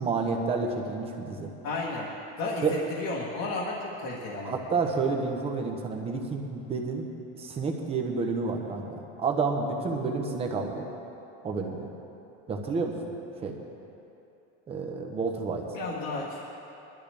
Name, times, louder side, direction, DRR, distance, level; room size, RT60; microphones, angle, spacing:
voice 1, 0.0-1.5 2.6-2.8 4.4-7.1 7.4-10.9 11.4-11.9 12.5-12.9 13.4-13.5 14.7-15.6, right 4 dB, 20° right, 2 dB, 1.1 m, -30 dB
voice 2, 1.6-2.1 2.4-4.5 15.7-16.4, left 3 dB, 45° left, -5 dB, 1.5 m, -33 dB
20.0 x 12.5 x 3.5 m, 2.8 s
cardioid pair, 175°, 30 cm